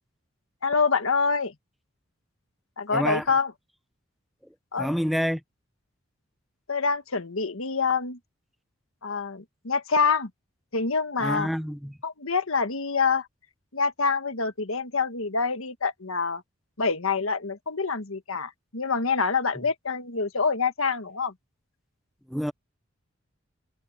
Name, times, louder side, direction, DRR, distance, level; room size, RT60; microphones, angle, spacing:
voice 1, 0.6-1.5 2.8-3.5 4.7-5.0 6.7-8.2 9.0-10.3 10.7-11.5 12.0-13.3 13.7-16.4 16.8-21.3, left 5 dB, 80° left, 1.5 m, -26 dB
voice 2, 2.9-3.2 4.8-5.4 11.2-12.0 22.3-22.5, equal, ahead, 0.8 m, -27 dB
head